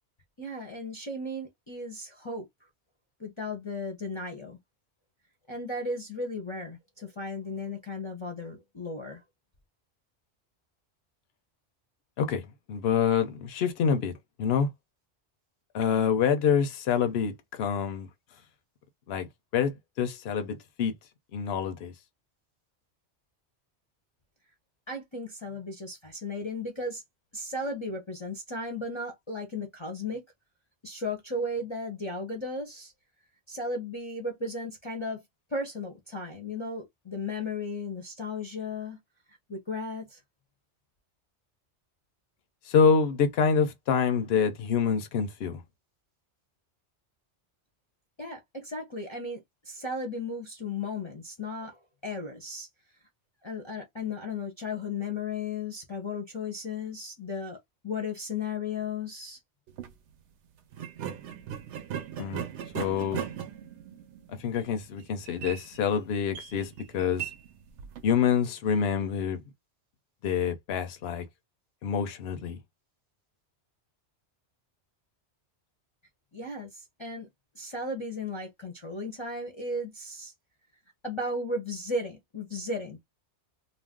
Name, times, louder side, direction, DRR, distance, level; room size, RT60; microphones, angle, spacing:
voice 1, 0.4-2.5 3.2-4.6 5.5-9.2 24.9-27.0 27.3-30.2 30.8-32.9 33.5-35.2 35.5-39.0 39.5-40.2 48.2-49.4 49.6-52.7 53.4-57.6 57.8-59.4 76.3-77.3 77.5-80.3 81.0-83.0, left 2 dB, 30° left, 0.7 m, -35 dB
voice 2, 12.2-14.1 14.4-14.7 15.7-18.1 19.1-19.3 19.5-20.9 21.3-21.9 42.7-45.6 62.2-62.4 62.7-63.3 64.4-67.3 68.0-69.4 70.2-71.2 71.8-72.6, left 7 dB, 65° left, 0.9 m, -26 dB
sound 1, 59.7-59.9 60.7-68.2, right 9 dB, 80° right, 0.9 m, -39 dB
2.5 x 2.2 x 3.5 m
omnidirectional pair, 1.2 m